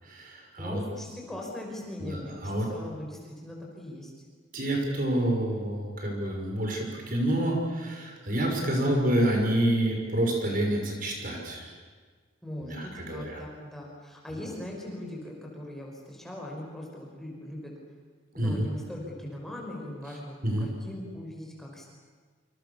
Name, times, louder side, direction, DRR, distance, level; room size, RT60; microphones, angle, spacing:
voice 1, 0.0-0.8 2.0-2.7 4.5-11.7 12.6-13.4 18.3-18.7 20.4-20.7, right 1 dB, 45° right, 1 dB, 6.0 m, -28 dB
voice 2, 0.6-4.1 12.4-17.7 18.3-21.9, left 1 dB, ahead, -2 dB, 5.7 m, -40 dB
28.0 x 27.5 x 7.2 m, 1.5 s
head